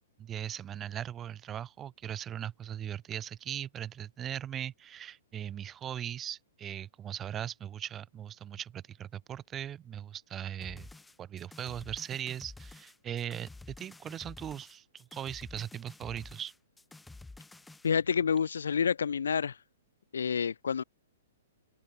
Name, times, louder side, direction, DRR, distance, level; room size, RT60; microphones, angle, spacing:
voice 1, 0.2-10.9 11.2-16.5, right 10 dB, 20° right, 1.8 m, -39 dB
sound 1, 10.6-17.9, left 2 dB, 5° left, 5.7 m, -50 dB
voice 2, 17.8-19.6 20.1-20.8, left 6 dB, 85° left, 0.4 m, -28 dB
open air
hypercardioid pair, 135°, 0 cm